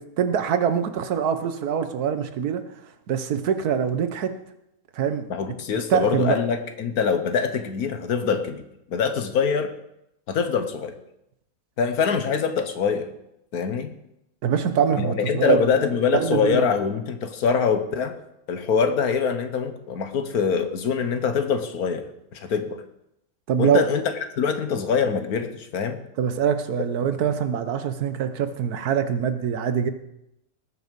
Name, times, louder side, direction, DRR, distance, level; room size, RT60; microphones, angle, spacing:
voice 1, 0.0-2.6 3.1-4.4 4.9-5.6 5.9-6.4 14.4-16.7 23.5-23.9 26.2-29.9, right 8 dB, 75° right, 10 dB, 1.4 m, -24 dB
voice 2, 5.3-8.6 8.9-9.7 10.3-11.0 11.8-13.1 13.5-13.9 15.0-18.1 18.5-22.1 22.3-22.8 23.6-24.0 24.4-26.0, left 6 dB, 70° left, 9 dB, 1.5 m, -24 dB
19.0 x 6.6 x 5.2 m, 0.82 s
omnidirectional pair, 1.7 m